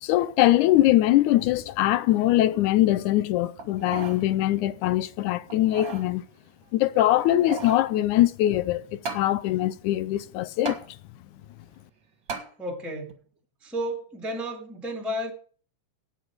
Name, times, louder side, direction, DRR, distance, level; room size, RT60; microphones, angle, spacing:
voice 1, 0.0-6.2 6.7-10.8, left 14 dB, 80° left, 2.0 m, -22 dB
sound 1, 3.6-4.2 4.7-4.8 5.5-6.1 7.1-7.9 9.0-9.3 10.6-10.8 12.3-12.5 13.1-13.2, right 4 dB, 40° right, 2.1 m, -35 dB
voice 2, 12.6-13.1 13.6-15.3, equal, ahead, 1.8 m, -32 dB
17.5 x 5.9 x 5.0 m
omnidirectional pair, 3.7 m